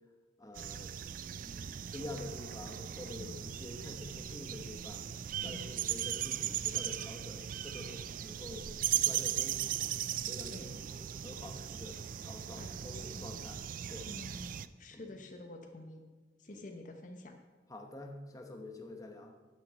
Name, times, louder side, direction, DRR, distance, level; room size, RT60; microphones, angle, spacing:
voice 1, 0.4-0.9 1.3-5.0 5.4-9.9 10.3-13.6 13.9-14.1 14.9-15.0 16.5-16.6 17.7-19.3, left 1 dB, 20° left, 3 dB, 1.1 m, -47 dB
sound 1, 0.6-14.7, right 11 dB, 50° right, 0.3 m, -38 dB
voice 2, 12.6-13.4 14.0-16.0 16.4-17.4, left 1 dB, 45° left, 5 dB, 1.0 m, -49 dB
10.0 x 6.3 x 8.1 m, 1.3 s
head